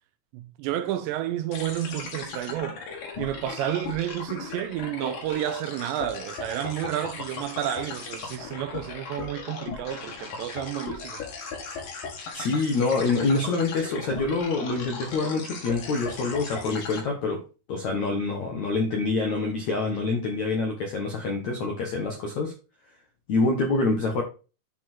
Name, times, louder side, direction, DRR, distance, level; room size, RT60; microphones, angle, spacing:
voice 1, 0.3-2.8 3.2-11.3, right 12 dB, 85° right, 2.7 m, -31 dB
sound 1, 1.5-17.0, left 5 dB, 50° left, 2.8 m, -37 dB
voice 2, 12.3-17.4 17.7-22.5 23.3-24.2, left 3 dB, 70° left, 1.7 m, -26 dB
10.5 x 4.6 x 4.4 m
omnidirectional pair, 5.5 m